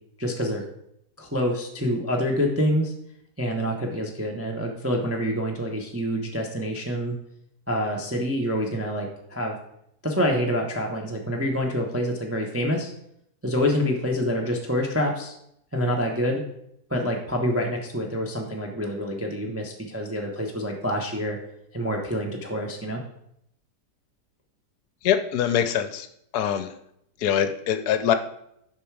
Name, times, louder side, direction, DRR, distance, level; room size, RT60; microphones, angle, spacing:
voice 1, 0.2-0.6 1.2-2.9 3.4-7.2 7.7-9.5 10.0-12.9 13.4-15.3 15.7-16.4 16.9-21.4 21.7-23.0, equal, 15° right, 1 dB, 0.5 m, -26 dB
voice 2, 25.0-26.1 26.3-26.7 27.2-28.1, left 9 dB, 75° left, 10 dB, 1.1 m, -23 dB
7.0 x 5.3 x 4.6 m, 0.76 s
omnidirectional pair, 1.8 m